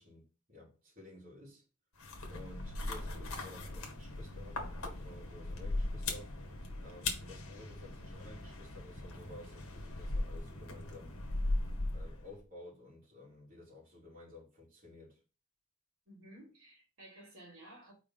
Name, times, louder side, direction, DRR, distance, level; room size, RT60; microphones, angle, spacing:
voice 1, 0.0-1.6 2.2-6.3 6.8-11.1 11.9-15.2, left 2 dB, 40° right, 3.2 m, -53 dB
sound 1, 2.0-12.4, left 2 dB, 70° left, 1.7 m, -39 dB
voice 2, 16.1-17.9, right 1 dB, 60° right, 3.6 m, -54 dB
4.9 x 4.8 x 5.6 m
head